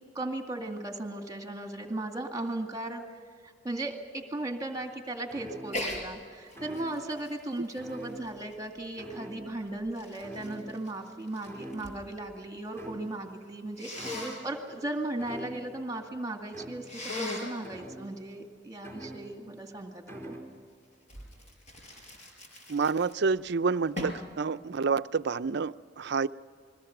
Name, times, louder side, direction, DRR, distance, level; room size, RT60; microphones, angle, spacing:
voice 1, 0.1-3.0 3.4-13.9 14.4-20.4, right 2 dB, 20° right, 2.2 m, -36 dB
sound 1, 5.3-6.0 6.5-7.2 7.8-8.7 9.0-9.6 10.2-11.1 11.4-12.2 12.8-13.4 13.9-14.4 15.2-15.9 16.5-17.1 17.6-18.3 18.8-19.6 20.1-20.6, right 1 dB, 15° left, 4.2 m, -45 dB
Sneeze, 5.7-6.0 6.5-8.8 9.5-12.0 12.3-12.9 13.8-14.4 16.8-17.6 21.1-23.4 24.0-24.3, left 2 dB, 40° left, 5.9 m, -39 dB
voice 2, 22.7-26.3, right 5 dB, 65° right, 0.5 m, -28 dB
29.0 x 22.0 x 6.0 m
head